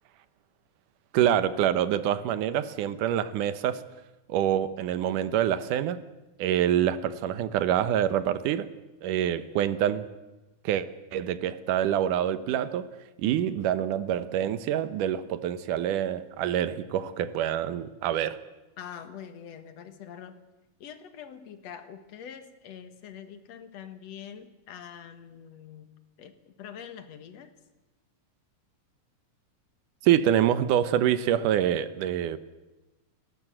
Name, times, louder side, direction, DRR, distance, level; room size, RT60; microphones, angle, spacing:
voice 1, 1.1-3.8 4.3-6.0 6.4-8.7 9.0-10.1 10.7-10.9 11.1-12.9 13.2-18.4 30.0-32.4, right 10 dB, 85° right, 13 dB, 2.5 m, -26 dB
voice 2, 18.8-20.4 20.8-25.9 26.2-27.5, left 8 dB, 60° left, 9 dB, 2.3 m, -44 dB
30.0 x 12.0 x 7.7 m, 1.1 s
omnidirectional pair, 3.6 m